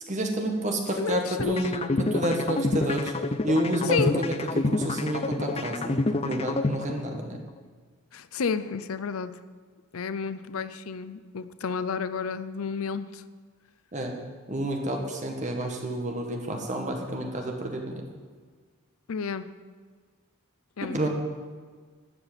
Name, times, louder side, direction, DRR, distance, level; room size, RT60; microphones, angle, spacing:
voice 1, 0.1-3.1 3.4-4.3 4.6-7.4 13.9-14.2 14.5-18.0 20.8-21.1, right 1 dB, 35° right, 2 dB, 1.6 m, -29 dB
voice 2, 1.0-1.6 3.8-4.2 8.1-9.4 9.9-13.2 19.1-19.5 20.8-21.1, left 5 dB, 80° left, 14 dB, 0.6 m, -31 dB
sound 1, 1.4-7.4, left 2 dB, 30° left, 0.5 m, -28 dB
12.5 x 5.9 x 8.8 m, 1.5 s
head